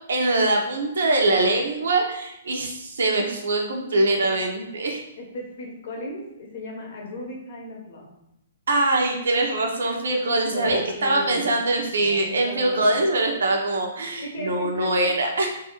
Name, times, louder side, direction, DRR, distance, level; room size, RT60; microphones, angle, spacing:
voice 1, 0.1-5.0 8.7-15.5, right 2 dB, 80° right, 2 dB, 0.6 m, -23 dB
voice 2, 5.2-8.1 10.5-13.0 14.2-15.1, left 1 dB, 60° left, 0 dB, 0.7 m, -35 dB
2.6 x 2.4 x 2.9 m, 0.84 s
hypercardioid pair, 140°, 0 cm